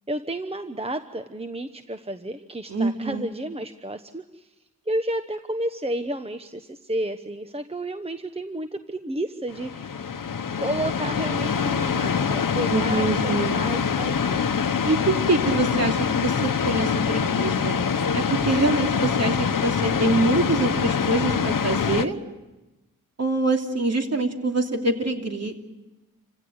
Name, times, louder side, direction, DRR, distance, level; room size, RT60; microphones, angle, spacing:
voice 1, 0.1-4.5 4.9-10.0 10.6-14.4, right 1 dB, 15° right, 8 dB, 1.0 m, -31 dB
voice 2, 2.7-3.2 12.7-13.6 14.9-17.8 18.1-22.2 23.2-25.7, right 2 dB, 45° right, 3 dB, 2.9 m, -25 dB
sound 1, 9.5-22.0, left 6 dB, 65° left, 1.1 m, -24 dB
28.0 x 16.5 x 8.1 m, 1.1 s
cardioid pair, 70°, 36 cm